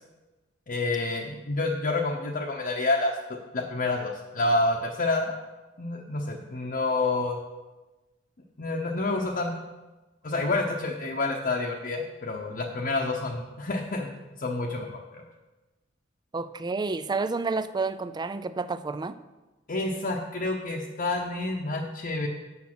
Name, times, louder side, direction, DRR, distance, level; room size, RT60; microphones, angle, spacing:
voice 1, 0.7-5.4 5.8-7.4 8.6-9.5 10.2-14.1 14.4-14.9 15.1-15.2 19.7-22.3, left 2 dB, 45° left, -1 dB, 0.9 m, -28 dB
voice 2, 16.3-19.2, right 3 dB, 20° right, 13 dB, 0.4 m, -30 dB
8.5 x 6.9 x 6.1 m, 1.1 s
head